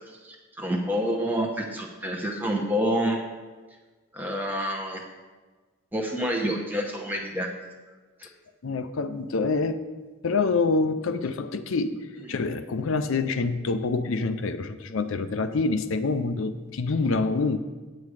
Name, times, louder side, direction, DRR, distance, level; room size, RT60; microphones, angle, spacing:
voice 1, 0.1-3.2 4.1-5.0 5.9-7.5 8.2-8.3, equal, 10° right, 0 dB, 0.9 m, -28 dB
voice 2, 8.6-9.8 10.2-11.9 12.3-17.6, left 3 dB, 60° left, 10 dB, 0.5 m, -26 dB
8.7 x 8.5 x 4.8 m, 1.3 s
head